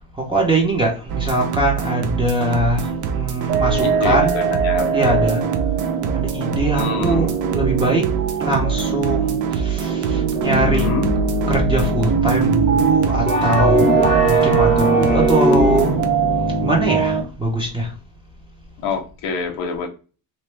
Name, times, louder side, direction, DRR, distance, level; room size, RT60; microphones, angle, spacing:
voice 1, 0.2-4.4 4.9-5.4 6.1-8.1 8.4-10.9 11.5-13.8 14.3-16.0 16.6-17.9, right 1 dB, 10° right, 1.0 m, -22 dB
sound 1, 1.1-16.1, right 7 dB, 40° right, 0.6 m, -25 dB
sound 2, 3.5-17.2, right 4 dB, 85° right, 1.5 m, -21 dB
voice 2, 3.8-5.3 6.7-7.3 10.4-11.1 18.8-19.9, left 4 dB, 65° left, 1.0 m, -27 dB
sound 3, 13.3-16.1, left 2 dB, 15° left, 1.0 m, -21 dB
2.8 x 2.8 x 3.2 m
cardioid pair, 125°, 49 cm